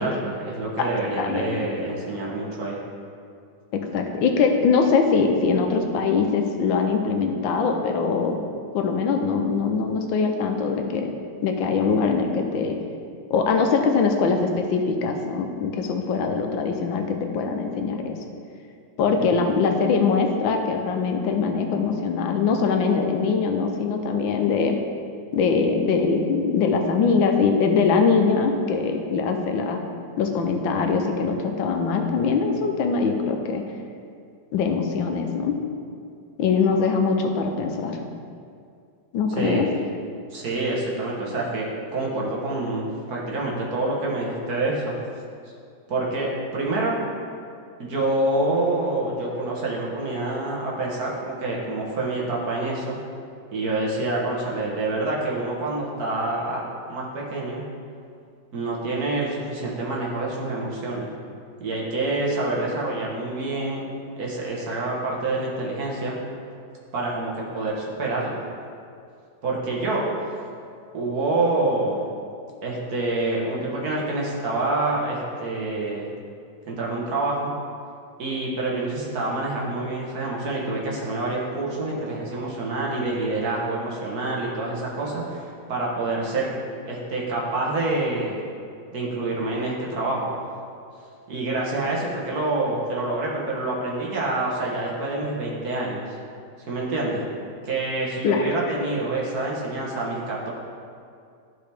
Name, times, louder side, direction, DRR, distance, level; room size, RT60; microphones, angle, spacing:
voice 1, 0.0-2.8 19.2-19.3 39.3-39.6 40.3-44.9 45.9-47.0 47.8-53.0 53.5-56.6 56.9-57.6 58.5-61.1 61.6-63.8 64.2-66.2 66.9-68.4 69.4-70.1 70.9-72.0 72.6-76.1 76.7-77.5 78.2-86.5 86.8-88.4 88.9-90.3 91.3-96.0 96.7-97.2 97.6-100.5, right 2 dB, 55° right, -4 dB, 1.6 m, -27 dB
voice 2, 1.2-1.6 3.7-8.4 8.7-11.1 11.4-12.8 13.3-18.2 19.0-24.8 25.3-29.8 30.2-33.6 34.5-35.5 36.4-38.0 39.1-39.7 98.2-98.5, left 5 dB, 90° left, 4 dB, 1.4 m, -22 dB
12.0 x 4.6 x 3.4 m, 2.4 s
omnidirectional pair, 2.1 m